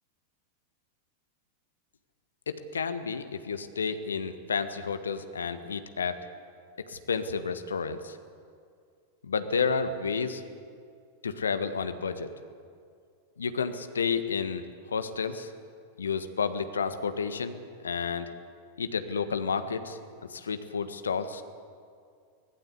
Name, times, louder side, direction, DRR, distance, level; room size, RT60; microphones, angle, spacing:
voice 1, 2.5-6.2 6.9-8.2 9.2-10.4 11.2-12.3 13.4-14.6 14.9-15.5 16.0-18.3 18.8-21.4, left 5 dB, 70° left, 9 dB, 1.5 m, -31 dB
25.0 x 17.5 x 8.3 m, 2.3 s
figure-of-eight pair, 90°, 0 cm